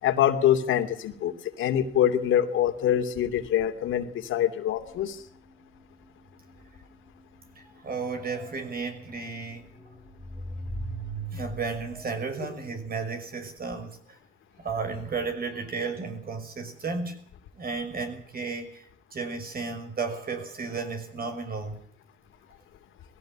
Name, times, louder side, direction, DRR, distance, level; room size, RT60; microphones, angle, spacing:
voice 1, 0.0-5.2, left 10 dB, 85° left, 7 dB, 3.0 m, -25 dB
sound 1, 4.9-12.1, right 1 dB, 10° right, 4.9 m, -39 dB
voice 2, 7.8-9.7 11.3-14.2 14.6-17.2 17.5-18.8 19.1-21.8, right 4 dB, 50° right, 6 dB, 6.2 m, -33 dB
20.5 x 16.5 x 8.9 m, 0.62 s
cardioid pair, 90°, 20 cm